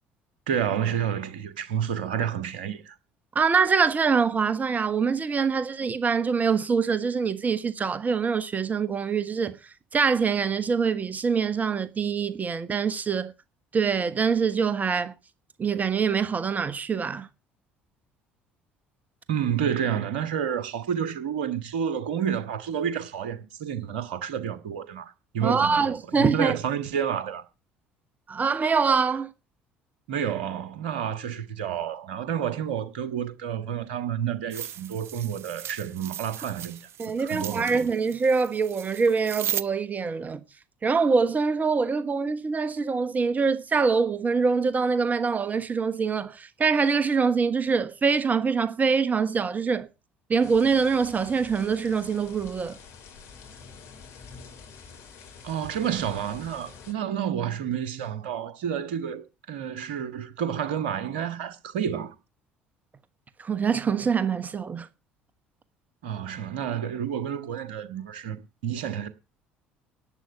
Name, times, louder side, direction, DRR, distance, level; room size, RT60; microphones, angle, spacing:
voice 1, 0.5-2.9 19.3-27.4 30.1-36.8 37.2-37.8 55.4-62.1 66.0-69.1, right 8 dB, 65° right, 1.5 m, -30 dB
voice 2, 3.3-13.3 13.7-15.1 15.6-17.3 25.4-26.5 28.3-29.3 37.0-40.4 40.8-49.9 50.3-52.8 63.4-64.9, right 5 dB, 30° right, 1.2 m, -24 dB
sound 1, 34.5-39.6, right 10 dB, 45° right, 0.7 m, -36 dB
sound 2, 50.4-56.9, left 5 dB, 50° left, 3.0 m, -47 dB
11.5 x 8.0 x 6.9 m
figure-of-eight pair, 55°, 6 cm